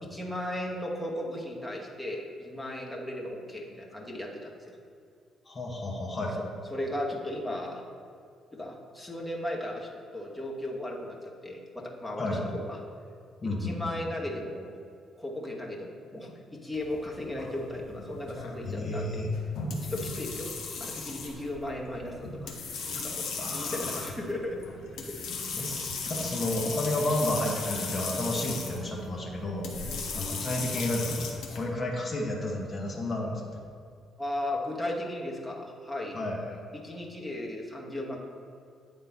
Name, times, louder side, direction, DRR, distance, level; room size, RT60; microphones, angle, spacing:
voice 1, 0.0-4.8 6.7-7.8 8.5-12.8 13.4-14.8 15.2-19.3 19.7-20.5 20.8-22.5 22.9-24.6 25.0-25.3 29.9-30.0 34.2-36.2 36.7-38.2, left 1 dB, 10° left, -2 dB, 1.2 m, -36 dB
voice 2, 5.5-6.4 12.2-12.5 13.4-13.9 18.6-19.3 23.4-24.1 25.5-29.7 30.1-33.6 36.1-36.6, left 1 dB, 35° left, -1 dB, 1.0 m, -32 dB
sound 1, 16.7-31.6, left 4 dB, 60° left, 0.9 m, -37 dB
8.9 x 3.7 x 4.0 m, 2.4 s
figure-of-eight pair, 45°, 0 cm